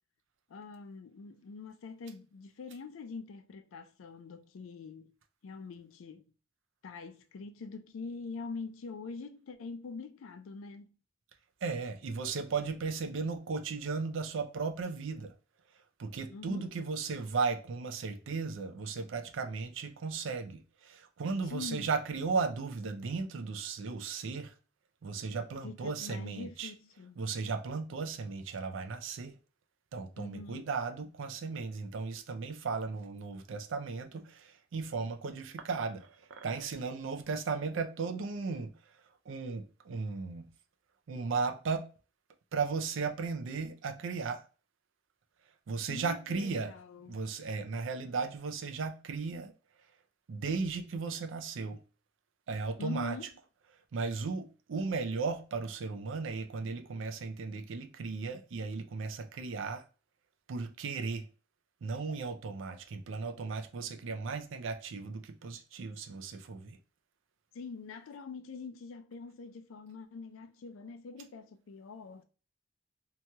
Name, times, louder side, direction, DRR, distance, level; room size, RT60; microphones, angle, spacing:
voice 1, 0.5-5.1 5.4-6.3 6.8-10.9 16.3-16.7 21.4-21.9 25.6-27.2 30.2-30.7 45.9-47.2 52.8-53.3 67.5-72.2, left 4 dB, 85° left, 0.4 m, -44 dB
voice 2, 11.6-15.3 16.0-24.5 25.0-26.7 27.2-29.4 29.9-36.1 36.4-38.7 39.3-40.4 41.1-41.9 42.5-44.4 45.7-46.7 47.1-49.5 50.3-51.8 52.5-53.2 53.9-59.8 60.5-61.3 61.8-66.8, right 4 dB, 70° right, 0.4 m, -36 dB
2.8 x 2.3 x 2.8 m
head